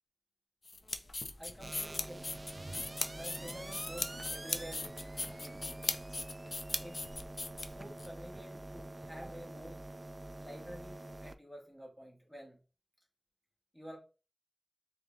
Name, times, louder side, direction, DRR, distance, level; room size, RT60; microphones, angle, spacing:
sound 1, 0.6-8.1, left 2 dB, 55° left, 0.5 m, -39 dB
voice 1, 1.4-2.4 3.1-5.8 6.8-7.1 7.6-9.8 10.4-12.6 13.7-14.0, equal, 15° left, -2 dB, 2.0 m, -50 dB
sound 2, 1.6-11.4, right 1 dB, 35° right, 0.3 m, -46 dB
3.7 x 3.2 x 3.6 m, 0.33 s
wide cardioid pair, 80°, 0 cm